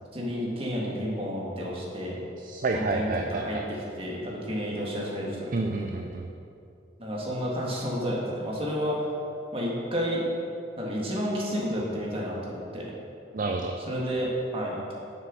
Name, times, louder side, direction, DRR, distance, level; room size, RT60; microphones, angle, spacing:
voice 1, 0.1-2.2 2.7-5.5 7.0-9.1 9.5-10.2 10.8-12.9 13.8-14.9, equal, 30° right, -4 dB, 1.8 m, -31 dB
voice 2, 2.4-3.6 5.5-6.3 13.3-13.7, right 3 dB, 45° right, 3 dB, 0.5 m, -29 dB
7.6 x 6.6 x 6.4 m, 2.6 s
head